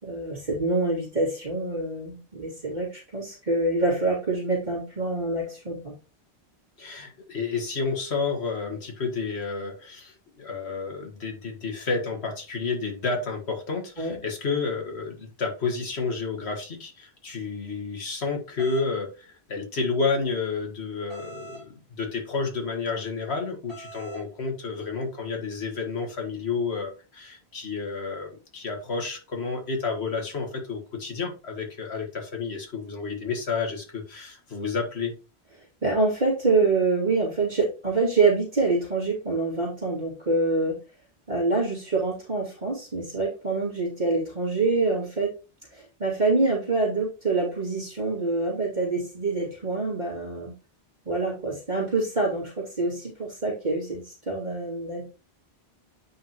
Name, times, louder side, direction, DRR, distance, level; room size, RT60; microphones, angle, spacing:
voice 1, 0.0-5.8 14.0-14.1 35.8-40.8 41.3-45.3 45.7-50.5 51.1-55.0, right 3 dB, 45° right, -6 dB, 2.7 m, -26 dB
voice 2, 6.8-35.1, left 4 dB, 75° left, 3 dB, 2.0 m, -30 dB
sound 1, 18.6-18.9 21.1-21.7 23.7-24.2, right 2 dB, 60° left, 3.3 m, -43 dB
8.7 x 5.5 x 3.0 m, 0.32 s
omnidirectional pair, 1.1 m